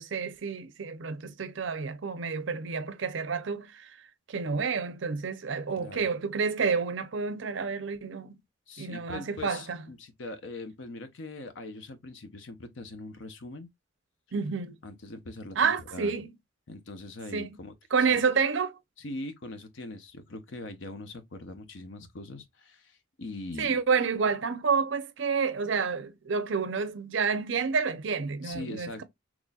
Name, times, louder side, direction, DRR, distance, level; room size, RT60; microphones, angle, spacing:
voice 1, 0.0-3.8 4.3-8.3 8.8-9.8 14.3-14.8 15.6-16.3 17.3-17.6 17.9-18.7 23.6-29.0, right 5 dB, 70° right, 0.6 m, -29 dB
voice 2, 5.8-6.1 8.7-13.7 14.8-16.1 16.7-18.1 19.0-23.8 28.4-29.0, left 2 dB, 70° left, 0.7 m, -42 dB
4.0 x 3.0 x 2.3 m
head